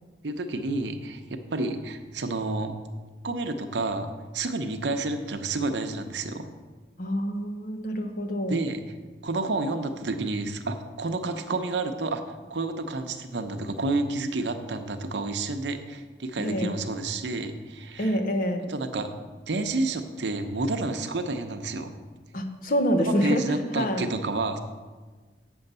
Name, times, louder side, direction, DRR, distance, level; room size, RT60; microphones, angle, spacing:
voice 1, 0.2-2.7 3.2-6.5 8.5-8.8 9.2-12.2 12.5-18.2 18.7-19.1 19.5-21.9 23.1-24.6, right 2 dB, 85° right, 7 dB, 0.8 m, -30 dB
voice 2, 7.0-8.6 16.4-16.7 18.0-18.7 22.3-24.1, equal, 50° left, 5 dB, 0.9 m, -27 dB
7.6 x 7.1 x 5.5 m, 1.4 s
head